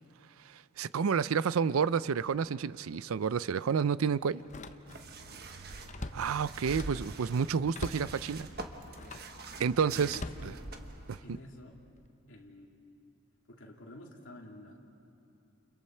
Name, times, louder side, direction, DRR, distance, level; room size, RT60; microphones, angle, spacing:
voice 1, 0.5-4.4 6.1-8.5 9.6-10.2 11.1-11.2, right 6 dB, 85° right, 0.5 m, -30 dB
Slam, 2.3-2.5 2.9-3.1 4.4-5.2 5.5-7.1 7.7-8.2 8.9-9.4 10.1-11.2 11.8-12.1, left 2 dB, 35° left, 0.6 m, -44 dB
sound 1, 4.9-11.2, right 2 dB, 50° right, 1.2 m, -45 dB
voice 2, 9.8-10.6 11.2-11.8 12.3-12.7 13.5-14.8, left 1 dB, 65° left, 2.7 m, -49 dB
29.5 x 29.0 x 4.4 m
head